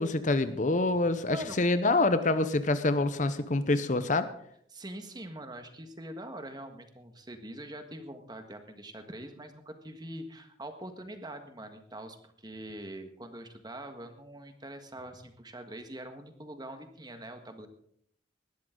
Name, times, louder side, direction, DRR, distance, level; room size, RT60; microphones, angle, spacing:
voice 1, 0.0-4.3, left 2 dB, 45° left, 11 dB, 0.8 m, -26 dB
voice 2, 4.7-17.7, right 1 dB, 25° right, 7 dB, 1.6 m, -44 dB
19.0 x 13.0 x 3.9 m, 0.68 s
head